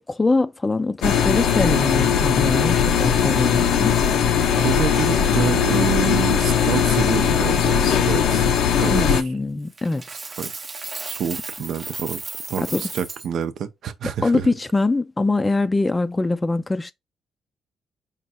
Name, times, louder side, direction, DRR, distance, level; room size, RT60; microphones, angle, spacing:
voice 1, 0.0-4.0 8.9-10.0 12.6-12.9 14.2-16.9, left 3 dB, 20° left, 0.4 m, -23 dB
sound 1, 1.0-9.2, left 8 dB, 80° left, 0.6 m, -19 dB
voice 2, 4.6-8.5 8.8-9.2 10.4-10.5 11.1-12.2 12.5-14.5, right 8 dB, 70° right, 0.6 m, -27 dB
Coin (dropping), 9.8-13.3, right 3 dB, 35° right, 0.7 m, -34 dB
5.2 x 2.4 x 4.2 m
cardioid pair, 90°, 0 cm